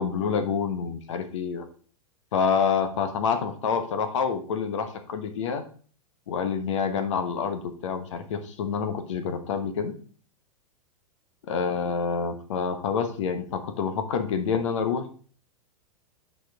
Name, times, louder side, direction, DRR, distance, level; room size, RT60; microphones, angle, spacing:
voice 1, 0.0-1.7 2.3-5.6 6.3-9.9 11.5-15.2, left 6 dB, 55° left, 8 dB, 1.0 m, -27 dB
9.4 x 4.4 x 3.4 m, 0.43 s
figure-of-eight pair, 100°, 19 cm